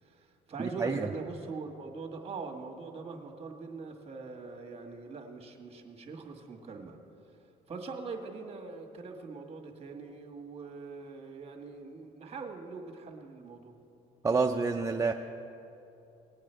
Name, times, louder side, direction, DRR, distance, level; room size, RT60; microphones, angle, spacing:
voice 1, 0.0-7.0 7.7-13.7, right 4 dB, 35° right, 4 dB, 1.7 m, -42 dB
voice 2, 0.6-1.1 14.2-15.1, right 4 dB, 15° right, 3 dB, 0.4 m, -28 dB
19.5 x 8.4 x 4.5 m, 2.8 s
cardioid pair, 110°, 17 cm